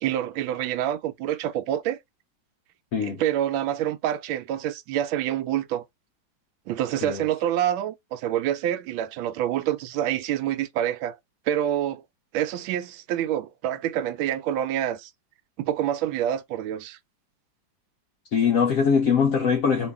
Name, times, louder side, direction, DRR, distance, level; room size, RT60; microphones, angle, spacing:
voice 1, 0.0-2.0 3.0-5.8 6.7-11.2 11.5-12.0 12.3-15.1 15.6-17.0, right 11 dB, 90° right, 1.4 m, -27 dB
voice 2, 18.3-19.9, left 6 dB, 80° left, 0.7 m, -22 dB
3.1 x 2.6 x 3.4 m
omnidirectional pair, 2.1 m